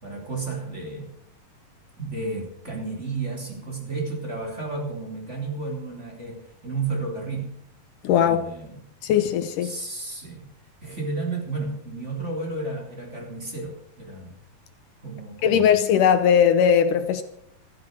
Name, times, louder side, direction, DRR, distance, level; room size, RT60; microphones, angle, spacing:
voice 1, 0.0-1.1 2.0-7.5 8.1-8.7 9.6-10.5 10.8-14.3 15.0-15.7, right 3 dB, 20° right, 0 dB, 3.6 m, -32 dB
voice 2, 8.0-8.5 9.0-9.7 15.4-17.2, left 8 dB, 75° left, 10 dB, 2.4 m, -19 dB
14.5 x 14.0 x 6.3 m, 0.68 s
omnidirectional pair, 3.9 m